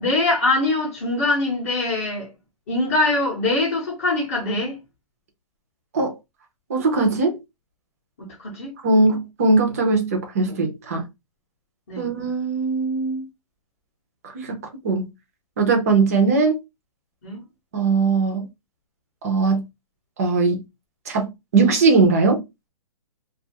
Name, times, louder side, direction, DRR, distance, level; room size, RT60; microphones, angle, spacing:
voice 1, 0.0-2.3 2.7-4.8 8.4-8.7 11.9-12.1 17.2-17.4, left 2 dB, 25° left, 0.7 m, -22 dB
voice 2, 6.7-7.4 8.8-11.0 12.0-13.3 14.3-15.1 15.6-16.6 17.7-18.5 19.2-19.6 20.2-20.6 21.1-22.4, right 3 dB, 25° right, 0.6 m, -20 dB
2.5 x 2.4 x 2.8 m
hypercardioid pair, 175°, 18 cm